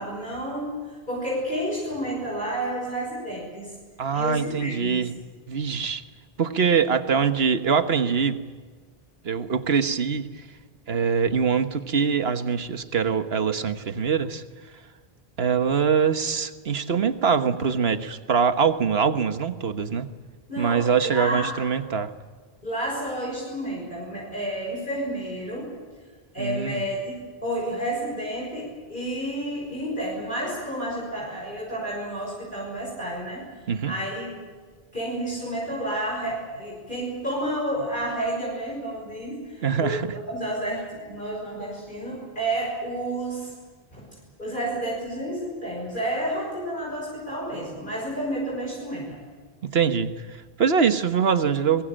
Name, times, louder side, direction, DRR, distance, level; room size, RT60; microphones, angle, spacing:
voice 1, 0.0-3.7 4.1-5.1 20.5-21.5 22.6-25.7 26.3-27.1 27.4-33.5 33.8-34.4 34.9-43.5 43.9-44.1 44.4-49.2, right 1 dB, 50° left, -3 dB, 6.2 m, -30 dB
voice 2, 4.0-5.1 5.5-6.0 6.4-8.4 9.2-10.3 10.9-14.4 15.4-20.1 20.6-22.1 26.4-26.8 33.7-33.9 39.6-40.1 49.6-51.8, right 6 dB, 75° right, 10 dB, 1.5 m, -23 dB
24.0 x 21.5 x 8.8 m, 1.5 s
omnidirectional pair, 1.0 m